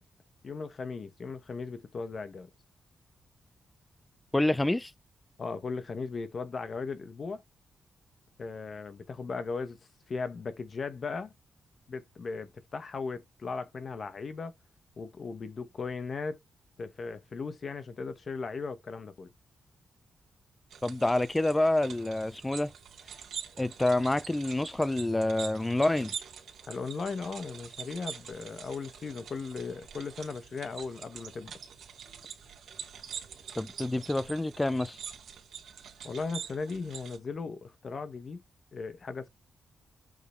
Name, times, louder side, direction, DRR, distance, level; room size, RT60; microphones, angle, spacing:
voice 1, 0.4-2.5 5.4-7.4 8.4-9.8 10.1-11.3 11.9-14.5 15.0-16.4 16.8-19.3 26.7-31.5 36.0-38.4 38.7-39.3, left 4 dB, 35° left, 1.1 m, -37 dB
voice 2, 4.3-4.9 20.8-22.7 23.6-26.1 33.6-35.0, left 1 dB, 10° left, 0.4 m, -27 dB
sound 1, 20.7-37.2, right 7 dB, 70° right, 2.3 m, -45 dB
8.3 x 3.9 x 4.3 m
wide cardioid pair, 180°, 0 cm